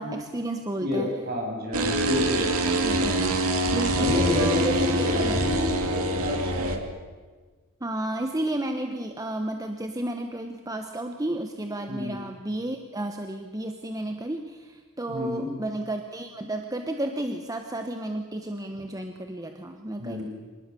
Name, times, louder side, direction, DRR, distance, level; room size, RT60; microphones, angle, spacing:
voice 1, 0.0-1.1 2.8-3.4 3.7-5.5 7.8-20.2, right 1 dB, 15° right, 5 dB, 1.2 m, -32 dB
voice 2, 0.8-2.5 3.9-6.8 11.9-12.2 15.1-15.5 20.0-20.2, left 1 dB, 45° right, 0 dB, 7.2 m, -29 dB
sound 1, 1.7-6.8, right 1 dB, 85° right, 2.6 m, -25 dB
26.0 x 19.5 x 7.0 m, 1.5 s
head